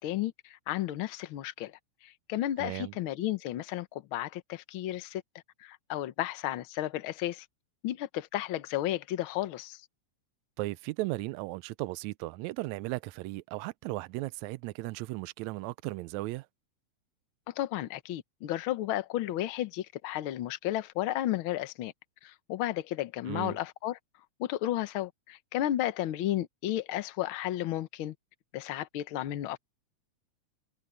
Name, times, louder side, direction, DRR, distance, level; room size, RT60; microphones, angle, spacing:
voice 1, 0.0-1.7 2.0-5.2 5.6-7.5 7.8-9.8 17.5-21.9 22.2-24.0 24.4-28.1 28.5-29.6, left 13 dB, 70° left, 1.2 m, -33 dB
voice 2, 2.6-2.9 10.6-16.5 23.3-23.6, right 19 dB, 80° right, 1.7 m, -36 dB
omnidirectional pair, 3.6 m